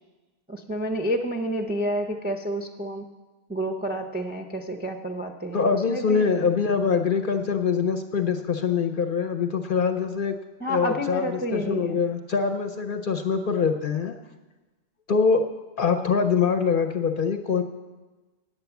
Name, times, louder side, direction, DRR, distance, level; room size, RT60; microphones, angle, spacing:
voice 1, 0.5-3.1 3.5-6.3 10.6-12.0, equal, 15° right, 4 dB, 0.3 m, -29 dB
voice 2, 5.5-10.4 10.7-14.1 15.1-15.5 15.8-17.6, left 5 dB, 55° left, 5 dB, 0.6 m, -24 dB
9.2 x 8.5 x 7.0 m, 1.2 s
omnidirectional pair, 1.3 m